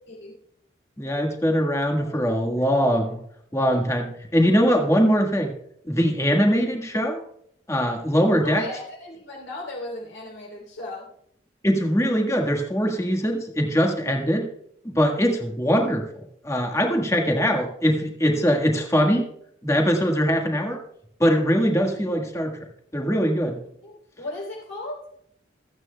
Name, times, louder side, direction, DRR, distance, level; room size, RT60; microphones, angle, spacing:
voice 1, 1.0-3.1 3.5-5.5 5.8-7.2 7.7-8.6 11.6-14.5 14.9-16.0 16.4-19.2 19.6-20.8 21.2-22.6 22.9-23.6, equal, 15° left, 2 dB, 1.5 m, -22 dB
voice 2, 8.4-11.1 23.8-25.0, left 2 dB, 85° left, -2 dB, 3.4 m, -36 dB
26.5 x 9.0 x 2.2 m, 0.71 s
head